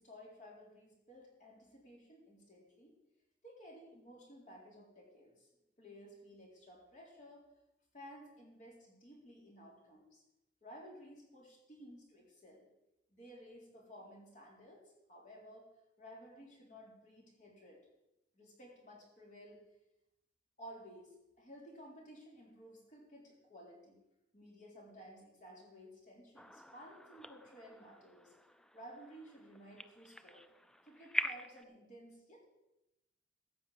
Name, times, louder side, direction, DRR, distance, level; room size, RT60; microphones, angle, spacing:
voice 1, 0.0-3.0 3.4-5.5 5.8-7.5 7.9-10.2 10.6-12.7 13.1-15.7 16.0-17.9 18.3-19.6 20.6-24.0 24.3-28.3 28.7-30.5 30.8-32.4, equal, 40° left, -2 dB, 3.8 m, -55 dB
sound 1, 26.4-31.6, left 1 dB, 5° left, 0.4 m, -44 dB
15.0 x 6.4 x 7.7 m, 0.93 s
head